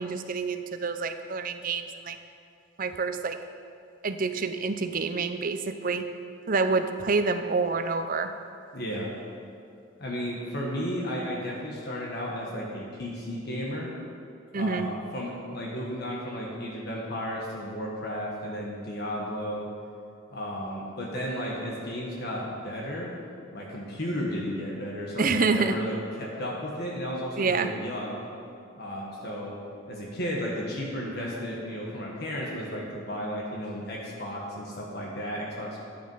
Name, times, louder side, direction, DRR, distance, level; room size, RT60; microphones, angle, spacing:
voice 1, 0.0-2.2 2.8-3.4 4.0-6.1 6.5-8.3 14.5-14.9 25.2-25.8 27.4-27.7, right 4 dB, 40° right, 9 dB, 0.6 m, -27 dB
voice 2, 8.7-9.1 10.0-13.9 14.5-19.7 20.3-23.1 23.5-28.2 28.7-35.8, equal, 50° left, -3 dB, 1.6 m, -34 dB
12.5 x 8.7 x 5.6 m, 2.5 s
head